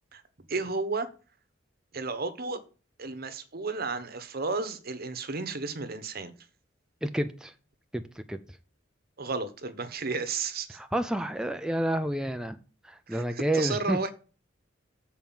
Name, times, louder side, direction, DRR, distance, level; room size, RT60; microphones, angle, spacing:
voice 1, 0.5-1.1 1.9-2.6 3.0-6.3 9.2-10.8 13.1-14.1, right 4 dB, 55° right, 1.0 m, -33 dB
voice 2, 7.0-7.5 7.9-8.0 8.3-8.4 10.7-12.6 12.8-14.0, right 1 dB, 5° right, 0.4 m, -29 dB
7.4 x 4.6 x 7.0 m
head